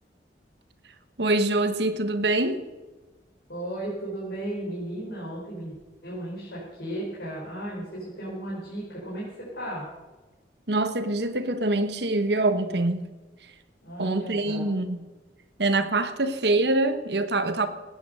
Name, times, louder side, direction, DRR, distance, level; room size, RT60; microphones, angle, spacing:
voice 1, 1.2-2.6 10.7-13.1 14.0-15.0 15.6-17.7, right 2 dB, 65° right, 10 dB, 1.3 m, -24 dB
voice 2, 3.5-5.7 6.0-9.9 13.8-14.7, right 1 dB, 65° left, -6 dB, 4.8 m, -35 dB
18.5 x 9.5 x 6.5 m, 1.2 s
head